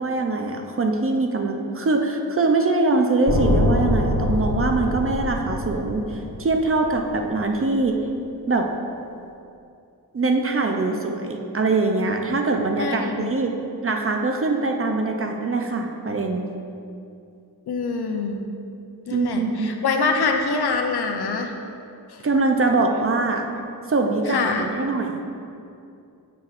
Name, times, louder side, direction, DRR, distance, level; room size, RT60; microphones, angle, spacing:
voice 1, 0.0-8.0 8.5-8.7 10.1-13.5 13.8-16.5 19.1-19.7 22.2-23.5 23.9-25.2, right 3 dB, 35° right, 3 dB, 0.5 m, -23 dB
sound 1, 3.3-7.4, left 1 dB, 55° left, 0.9 m, -24 dB
voice 2, 12.8-13.3 17.7-18.4 19.1-21.5 22.1-22.2 24.3-24.7, left 4 dB, 80° left, 4 dB, 0.6 m, -25 dB
7.5 x 6.0 x 2.4 m, 2.6 s
wide cardioid pair, 125°, 38 cm